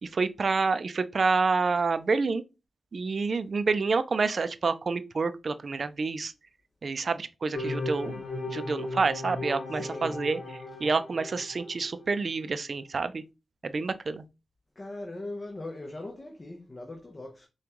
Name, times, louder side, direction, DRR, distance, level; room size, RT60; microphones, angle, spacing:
voice 1, 0.0-2.4 2.9-6.3 6.8-13.2 13.6-14.2, right 4 dB, 60° right, 0.4 m, -28 dB
sound 1, 7.5-12.1, left 2 dB, 65° left, 1.2 m, -36 dB
voice 2, 9.7-10.3 10.7-10.8 14.8-17.5, left 2 dB, 35° left, 0.8 m, -40 dB
5.2 x 2.3 x 3.0 m
cardioid pair, 50°, 0 cm